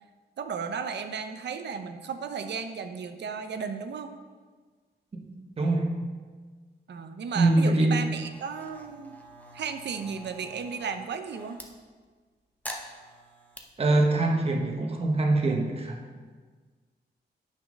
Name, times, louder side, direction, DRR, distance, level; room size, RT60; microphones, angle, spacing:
voice 1, 0.4-4.1 6.9-9.2 9.5-11.6, right 6 dB, 75° right, 8 dB, 0.8 m, -34 dB
voice 2, 5.6-6.0 7.3-8.1 13.8-16.0, right 2 dB, 35° right, 1 dB, 1.2 m, -24 dB
sound 1, 8.3-11.7 12.6-13.6, equal, 10° left, 0.9 m, -45 dB
9.5 x 6.4 x 5.3 m, 1.5 s
wide cardioid pair, 165°, 18 cm